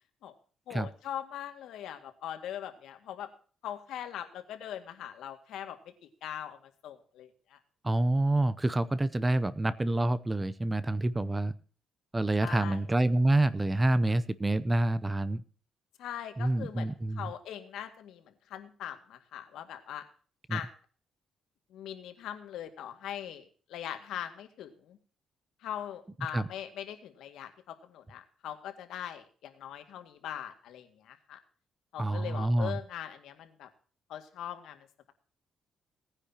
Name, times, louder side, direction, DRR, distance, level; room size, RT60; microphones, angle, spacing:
voice 1, 0.7-3.3 3.6-5.8 6.2-6.6 6.8-7.6 12.4-12.8 16.0-16.9 17.2-18.2 18.5-20.0 20.5-20.7 21.7-25.0 25.6-31.4 31.9-33.7 34.1-35.1, left 10 dB, 80° left, 7 dB, 2.0 m, -41 dB
voice 2, 7.8-11.5 12.1-15.4 16.4-17.3 20.5-20.6 26.3-26.5 32.0-32.8, right 2 dB, 10° right, 16 dB, 0.6 m, -27 dB
18.5 x 9.9 x 2.8 m, 0.40 s
cardioid pair, 140°, 0 cm